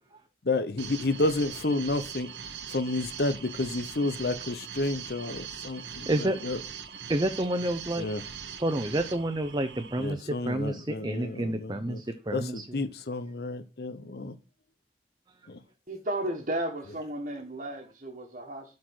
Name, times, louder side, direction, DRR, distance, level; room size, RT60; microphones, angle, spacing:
voice 1, 0.4-2.3 2.7-6.7 8.0-8.2 9.9-12.0 12.3-14.3 15.5-15.6, left 2 dB, 60° left, 0.8 m, -31 dB
sound 1, 0.8-10.1, right 7 dB, 80° right, 1.0 m, -41 dB
voice 2, 6.0-6.4 7.1-8.1 8.6-12.8, right 1 dB, 25° right, 0.7 m, -29 dB
voice 3, 15.9-18.7, right 1 dB, 45° right, 1.4 m, -34 dB
8.1 x 4.4 x 6.2 m
head